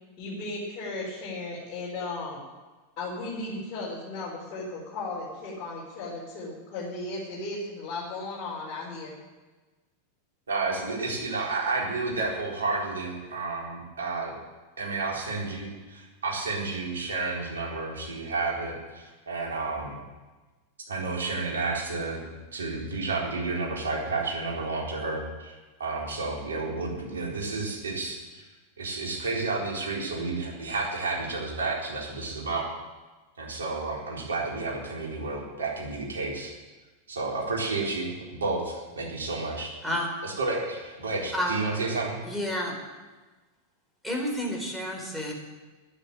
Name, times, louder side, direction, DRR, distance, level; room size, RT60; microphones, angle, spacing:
voice 1, 0.2-2.4 3.0-9.1, left 2 dB, 35° left, -7 dB, 5.0 m, -35 dB
voice 2, 10.5-14.3 14.8-20.1 20.9-22.2 22.5-25.5 25.8-28.4 28.8-32.6 33.4-36.5 37.1-39.7 40.2-42.2, right 3 dB, 70° right, -2 dB, 4.1 m, -31 dB
voice 3, 42.2-42.8 44.0-45.3, equal, ahead, -1 dB, 4.4 m, -30 dB
9.9 x 9.8 x 10.0 m, 1.2 s
figure-of-eight pair, 90°, 0 cm